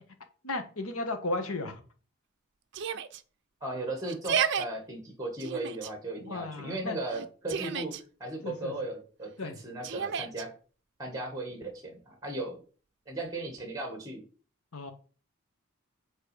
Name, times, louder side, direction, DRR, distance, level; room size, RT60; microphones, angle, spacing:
voice 1, 0.4-1.8 6.2-7.0 8.4-8.7 9.4-9.6 14.7-14.9, left 2 dB, 85° left, 7 dB, 1.5 m, -34 dB
Yell, 2.7-3.2 4.1-4.7 5.4-5.9 7.1-8.0 9.8-10.4, right 7 dB, 55° right, 0.5 m, -31 dB
voice 2, 3.6-10.5 11.0-12.6 13.1-14.2, right 2 dB, 15° right, 4 dB, 1.8 m, -37 dB
8.3 x 4.3 x 5.0 m, 0.38 s
head